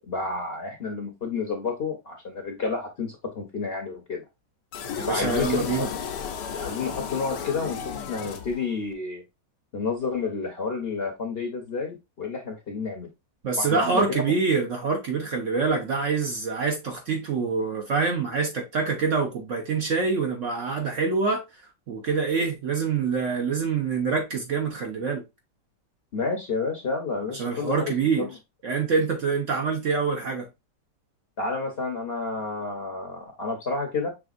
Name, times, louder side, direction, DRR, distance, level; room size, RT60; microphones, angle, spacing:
voice 1, 0.1-4.2 5.1-5.9 6.6-9.2 9.7-13.1 13.6-14.0 26.1-28.3 31.4-34.1, left 4 dB, 45° left, 0.9 m, -30 dB
sound 1, 4.7-8.9, left 7 dB, 75° left, 1.3 m, -33 dB
voice 2, 5.0-5.9 13.4-21.4 21.9-25.2 27.3-28.3 28.6-30.5, right 5 dB, 55° right, 0.9 m, -25 dB
6.1 x 3.3 x 2.4 m
omnidirectional pair, 1.9 m